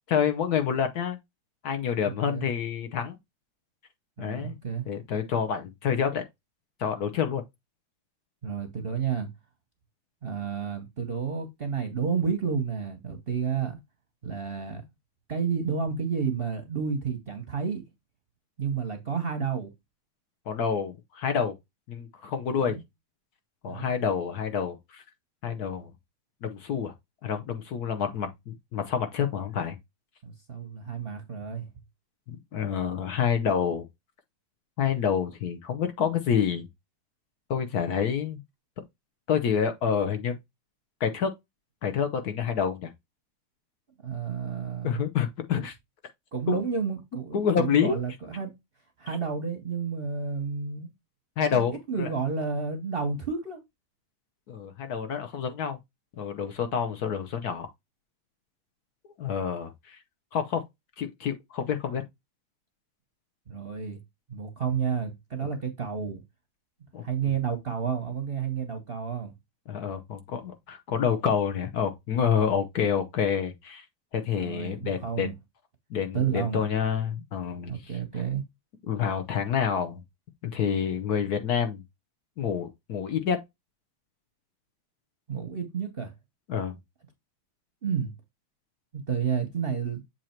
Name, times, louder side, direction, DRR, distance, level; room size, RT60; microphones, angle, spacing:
voice 1, 0.1-1.2 1.6-3.2 4.2-4.6 4.9-6.2 6.8-7.4 20.5-21.5 21.9-22.8 23.6-25.0 25.4-25.9 26.4-26.9 27.2-29.8 32.3-33.9 34.8-36.7 37.5-38.4 39.3-40.4 41.0-41.3 41.8-42.9 44.8-45.7 46.5-46.6 47.3-48.0 51.4-52.1 54.5-55.8 56.2-57.7 59.2-60.0 60.3-60.6 61.0-62.0 66.9-67.0 69.7-73.8 74.1-75.3 75.9-77.8 78.9-80.0 80.4-81.8 82.4-83.4 86.5-86.8, left 7 dB, 60° left, 1.0 m, -28 dB
voice 2, 2.0-2.5 4.2-4.9 8.4-9.3 10.2-13.8 14.2-14.8 15.3-17.9 18.6-19.7 22.6-22.8 23.7-23.9 30.2-31.7 44.0-45.1 45.5-45.6 46.3-48.5 49.0-50.9 51.5-53.6 63.5-64.0 64.3-66.2 67.0-69.3 74.3-75.3 76.1-76.6 77.7-78.4 85.3-86.1 87.8-88.1 88.9-90.0, right 6 dB, 45° right, 0.8 m, -31 dB
7.6 x 2.8 x 4.4 m
omnidirectional pair, 2.3 m